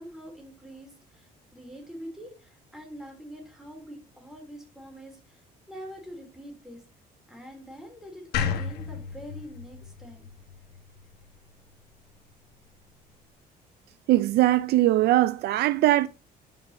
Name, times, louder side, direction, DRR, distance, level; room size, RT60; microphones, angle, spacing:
voice 1, 0.0-6.8 7.3-10.3, equal, 5° right, 3.5 m, -44 dB
sound 1, 8.3-11.5, left 6 dB, 75° left, 1.4 m, -33 dB
voice 2, 14.1-16.1, right 15 dB, 70° right, 0.4 m, -21 dB
5.8 x 5.2 x 5.4 m
cardioid pair, 110°, 17 cm